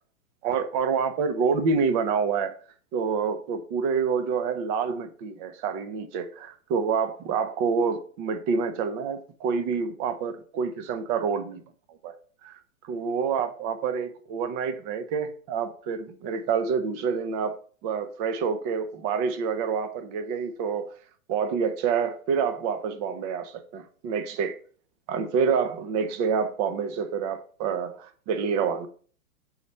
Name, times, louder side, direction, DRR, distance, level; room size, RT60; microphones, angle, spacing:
voice 1, 0.4-2.5 2.9-11.6 11.9-12.1 12.4-12.6 12.9-17.6 17.8-20.9 21.3-24.6 25.1-28.9, right 6 dB, 30° right, 0.7 m, -27 dB
7.3 x 4.2 x 3.1 m
hypercardioid pair, 135°, 41 cm